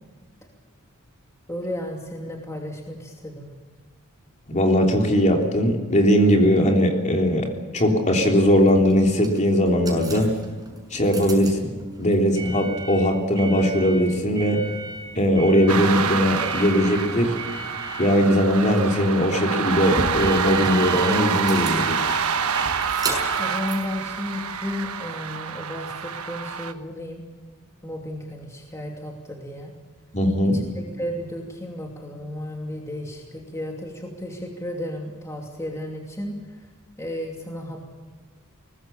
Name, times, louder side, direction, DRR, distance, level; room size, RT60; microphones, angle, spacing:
voice 1, 1.5-3.5 23.4-27.2 27.8-29.7 30.4-36.7 37.0-37.8, left 1 dB, 15° left, 0 dB, 2.7 m, -33 dB
voice 2, 4.5-7.5 7.7-10.3 10.9-11.7 12.0-14.6 15.1-17.3 18.0-22.2 30.1-30.6, equal, 35° left, 2 dB, 3.5 m, -20 dB
sound 1, 8.4-24.8, right 2 dB, 20° right, 6.4 m, -36 dB
sound 2, 15.7-26.7, right 6 dB, 80° right, 1.3 m, -27 dB
23.0 x 20.0 x 7.1 m, 1.4 s
head